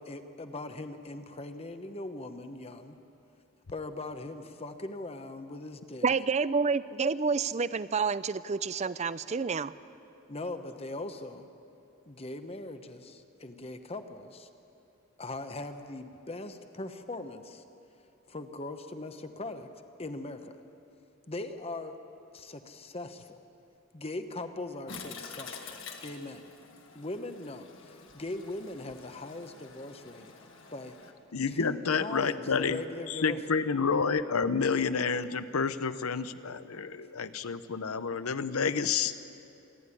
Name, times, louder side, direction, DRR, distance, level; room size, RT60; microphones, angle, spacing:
voice 1, 0.0-3.0 3.7-6.1 10.3-11.5 12.1-14.5 15.2-17.6 18.3-19.7 20.0-20.6 21.3-22.0 22.3-23.4 23.9-26.4 26.9-30.3 30.7-30.9 31.5-33.6, left 2 dB, 25° left, 8 dB, 1.0 m, -40 dB
voice 2, 6.0-9.7, right 5 dB, 30° right, 16 dB, 0.4 m, -29 dB
Toilet flush, 24.9-31.1, left 5 dB, 60° left, 1.9 m, -47 dB
voice 3, 31.3-32.8 33.1-39.1, left 5 dB, 80° left, 13 dB, 0.8 m, -29 dB
27.0 x 10.5 x 9.8 m, 2.8 s
head